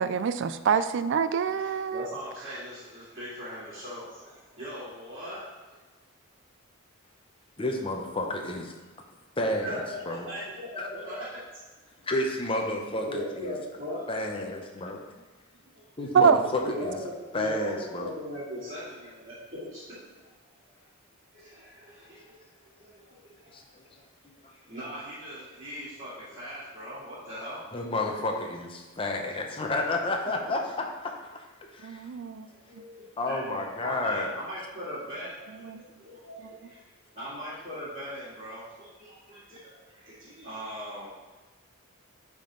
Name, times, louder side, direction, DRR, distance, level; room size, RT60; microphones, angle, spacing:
voice 1, 0.0-2.1 16.1-16.4 31.8-32.5 35.6-35.8, right 6 dB, 55° right, 12 dB, 0.3 m, -25 dB
voice 2, 1.5-5.5 5.7-5.8 9.6-11.4 13.0-14.1 15.7-15.8 16.6-20.0 21.3-22.4 22.6-23.6 24.5-27.6 30.2-30.3 32.5-36.8 37.1-41.1, equal, 35° right, -14 dB, 2.2 m, -40 dB
voice 3, 7.6-8.7 9.4-10.3 10.8-10.9 12.0-13.5 14.1-15.0 16.0-17.0 17.3-18.1 23.5-23.8 24.2-24.3 27.7-32.0 33.2-34.3, left 2 dB, 25° left, 2 dB, 0.6 m, -31 dB
8.9 x 3.6 x 3.8 m, 1.2 s
head